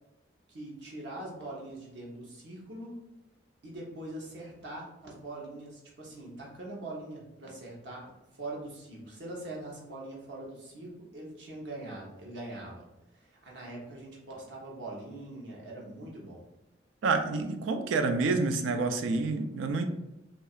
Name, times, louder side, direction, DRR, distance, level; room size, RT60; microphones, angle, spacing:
voice 1, 0.5-2.9 3.6-12.8 13.1-16.4, right 2 dB, 65° right, -3 dB, 0.8 m, -42 dB
voice 2, 17.0-19.8, right 3 dB, 85° right, 7 dB, 0.3 m, -28 dB
2.8 x 2.3 x 2.3 m, 0.94 s
head